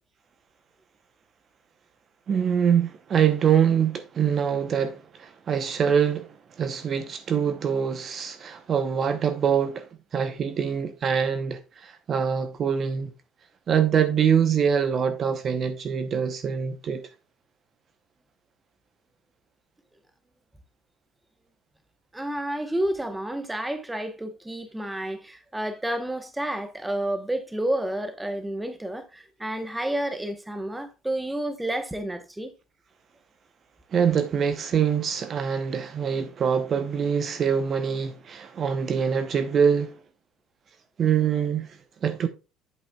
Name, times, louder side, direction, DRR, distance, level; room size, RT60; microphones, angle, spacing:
voice 1, 2.3-13.1 13.7-17.1 33.9-40.0 41.0-41.7 42.0-42.3, right 7 dB, 40° right, 0.7 m, -24 dB
voice 2, 22.1-32.5, right 1 dB, 5° right, 0.9 m, -30 dB
8.2 x 7.2 x 2.2 m
cardioid pair, 120°, 0 cm